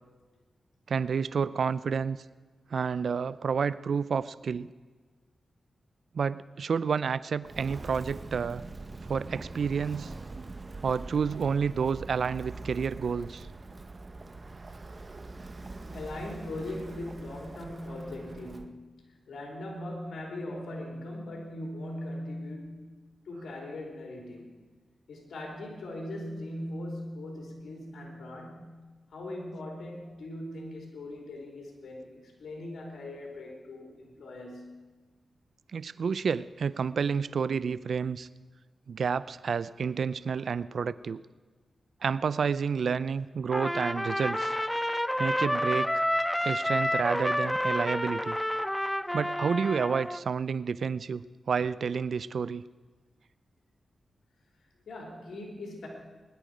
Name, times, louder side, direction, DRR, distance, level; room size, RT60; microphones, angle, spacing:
voice 1, 0.9-2.2 2.7-4.7 6.1-8.6 9.1-10.1 10.8-13.5 35.7-38.3 38.9-41.2 42.0-44.5 45.2-46.0 46.4-48.4 49.1-52.6, right 6 dB, 70° right, 17 dB, 0.4 m, -30 dB
Walk footsteps, 7.4-18.7, right 3 dB, 40° right, 1.0 m, -43 dB
voice 2, 15.9-22.9 23.3-24.5 25.1-28.8 29.1-34.8 54.9-55.9, left 1 dB, 75° left, -1 dB, 3.7 m, -40 dB
Trumpet, 43.5-50.2, equal, 5° left, 0.5 m, -29 dB
22.0 x 11.0 x 5.1 m, 1.3 s
cardioid pair, 55°, 0 cm